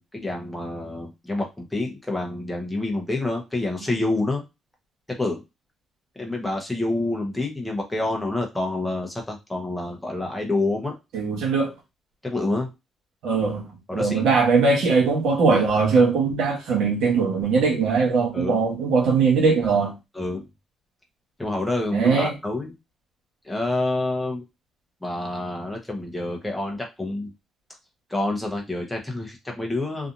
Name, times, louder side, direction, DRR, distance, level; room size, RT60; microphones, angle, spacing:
voice 1, 0.0-4.4 5.2-5.4 6.2-11.0 12.2-12.7 13.9-14.2 18.3-18.6 20.1-20.5 21.4-22.7 23.4-24.4 25.0-27.3 28.1-30.1, left 2 dB, 5° left, 0.8 m, -27 dB
voice 2, 11.1-11.7 13.2-13.6 13.9-19.9 21.9-22.3, right 4 dB, 85° right, 1.1 m, -20 dB
2.7 x 2.4 x 2.5 m
cardioid pair, 90°, 0 cm